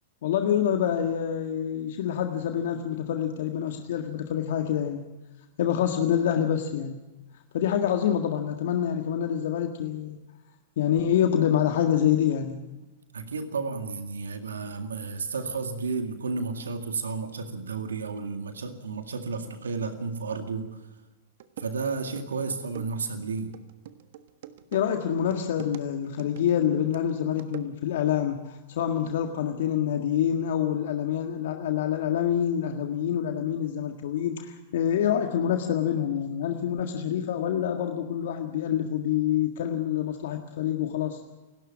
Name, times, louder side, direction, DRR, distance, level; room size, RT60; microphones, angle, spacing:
voice 1, 0.2-5.0 5.6-7.0 7.5-10.2 10.8-12.6 24.7-41.2, left 9 dB, 65° left, 5 dB, 1.7 m, -26 dB
voice 2, 13.1-20.7 21.6-23.5, right 4 dB, 85° right, 7 dB, 2.0 m, -32 dB
sound 1, 21.0-21.1 21.4-28.1, right 10 dB, 65° right, 1.4 m, -45 dB
28.5 x 12.5 x 7.3 m, 1.2 s
hypercardioid pair, 110°, 0 cm